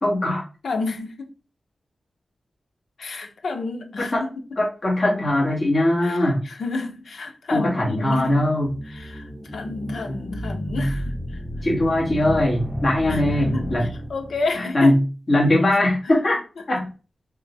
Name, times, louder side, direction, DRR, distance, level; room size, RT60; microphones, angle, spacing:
voice 1, 0.0-0.4 4.1-4.2 4.6-6.4 7.5-8.7 11.6-13.9 14.6-15.0 15.3-16.4 16.7-16.9, left 1 dB, 40° left, 2.3 m, -20 dB
voice 2, 0.6-1.3 3.0-4.3 6.0-8.4 8.9-11.4 13.1-15.0 16.0-16.2, left 3 dB, 80° left, 0.8 m, -31 dB
sound 1, 8.2-14.5, equal, 5° right, 1.1 m, -30 dB
3.9 x 3.1 x 4.0 m
wide cardioid pair, 90°, 0 cm